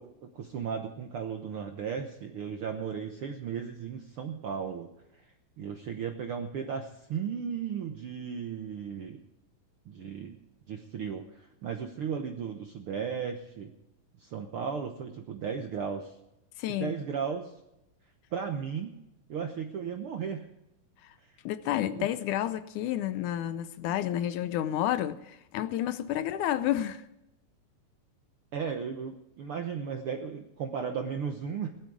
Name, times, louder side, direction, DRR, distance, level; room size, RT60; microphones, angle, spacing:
voice 1, 0.0-4.9 5.1-9.2 9.8-10.4 10.7-13.7 14.2-16.1 16.7-17.5 18.3-18.9 19.3-20.5 21.2-21.4 22.0-22.1 28.5-31.7, right 7 dB, 70° right, 1.3 m, -35 dB
voice 2, 16.6-17.0 21.5-27.0, left 12 dB, 80° left, 2.0 m, -30 dB
17.0 x 12.0 x 4.9 m
omnidirectional pair, 3.8 m